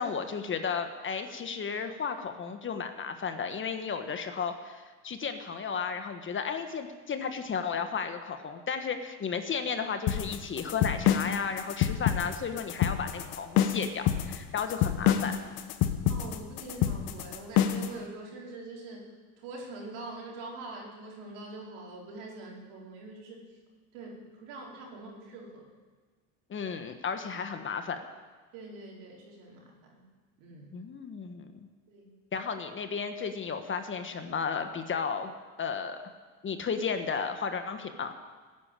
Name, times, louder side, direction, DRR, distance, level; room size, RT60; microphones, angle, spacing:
voice 1, 0.0-15.4 26.5-28.0 30.7-31.7 32.3-35.3 35.6-36.0 36.4-38.2, left 6 dB, 30° left, 7 dB, 1.3 m, -34 dB
sound 1, 10.1-17.9, left 10 dB, 60° left, 1.3 m, -27 dB
voice 2, 16.1-19.1 19.4-23.4 23.9-25.7 28.5-30.0 30.4-30.7 31.9-32.1, right 2 dB, 70° right, -1 dB, 4.7 m, -44 dB
13.5 x 10.0 x 9.0 m, 1.5 s
supercardioid pair, 105°, 40 cm